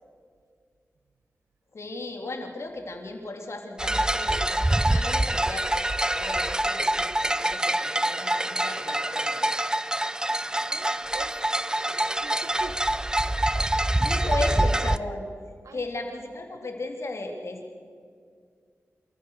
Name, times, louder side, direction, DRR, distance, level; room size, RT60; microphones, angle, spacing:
voice 1, 1.7-5.7 6.1-9.4 14.0-15.3 15.7-17.8, left 2 dB, 65° left, 3 dB, 3.4 m, -36 dB
sound 1, 3.8-15.0, right 1 dB, 15° right, 0.6 m, -25 dB
voice 2, 10.7-11.5 11.9-12.8 15.6-15.9, right 4 dB, 90° right, 11 dB, 1.1 m, -43 dB
28.0 x 14.5 x 6.6 m, 2.1 s
cardioid pair, 60°, 5 cm